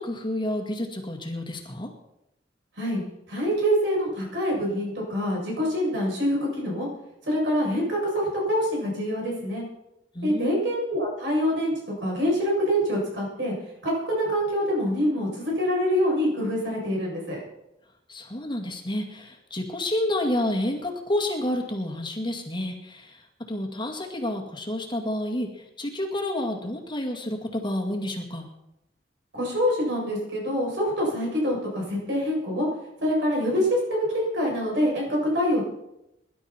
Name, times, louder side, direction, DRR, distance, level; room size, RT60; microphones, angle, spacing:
voice 1, 0.0-1.9 10.1-10.7 18.1-28.5, left 1 dB, 25° left, 1 dB, 2.1 m, -30 dB
voice 2, 3.3-6.9 7.2-9.6 10.2-11.7 12.0-13.5 13.8-17.4 29.3-32.7 33.0-35.6, equal, 70° right, -3 dB, 7.8 m, -25 dB
22.5 x 11.5 x 4.4 m, 0.86 s
head